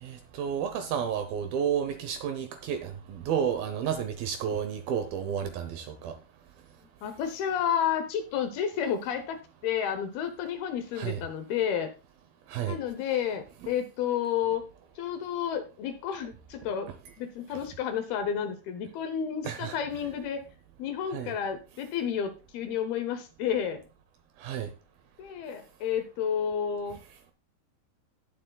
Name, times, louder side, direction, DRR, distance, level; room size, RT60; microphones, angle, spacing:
voice 1, 0.0-6.2 11.0-11.2 12.5-12.8 13.6-13.7 19.4-19.8 21.1-21.3 24.4-24.7, right 8 dB, 75° right, 2.3 m, -31 dB
voice 2, 7.0-11.9 12.7-14.6 15.0-16.9 17.2-20.4 20.8-23.8 25.2-27.0, left 8 dB, 75° left, 2.5 m, -31 dB
18.5 x 7.3 x 2.3 m
omnidirectional pair, 5.0 m